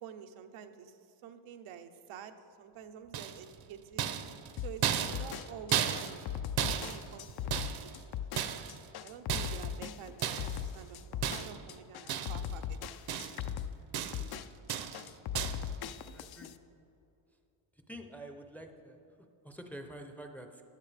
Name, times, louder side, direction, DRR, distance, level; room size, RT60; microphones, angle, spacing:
voice 1, 0.0-4.1 4.6-6.3 6.8-7.9 9.0-10.4 10.7-13.3, right 8 dB, 90° right, 7 dB, 0.8 m, -49 dB
sound 1, 3.1-3.6 4.0-8.0 8.4-8.9 9.3-9.8 10.2-10.6 11.2-11.7 12.1-12.6 12.8-13.5 13.9-14.3 14.7-15.1 15.3-15.7, right 9 dB, 50° right, 0.6 m, -34 dB
sound 2, 4.6-16.5, left 9 dB, 50° left, 0.5 m, -39 dB
voice 2, 16.1-16.5 17.9-19.0 19.4-20.6, right 1 dB, 5° left, 5 dB, 0.5 m, -47 dB
14.5 x 9.8 x 3.3 m, 2.7 s
cardioid pair, 135°, 50 cm